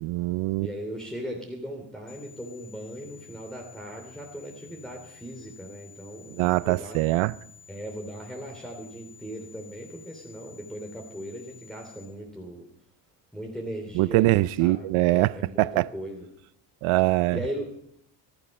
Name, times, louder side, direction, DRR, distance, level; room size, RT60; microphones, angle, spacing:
voice 1, 0.0-0.7 6.3-7.4 13.9-15.9 16.8-17.4, right 19 dB, 80° right, 0.6 m, -23 dB
voice 2, 0.6-7.0 7.7-12.7 13.3-15.7 15.9-16.3 17.3-17.8, equal, ahead, 2.9 m, -38 dB
sound 1, 2.1-12.1, left 6 dB, 35° left, 3.1 m, -52 dB
19.0 x 12.0 x 5.3 m
cardioid pair, 85°, 49 cm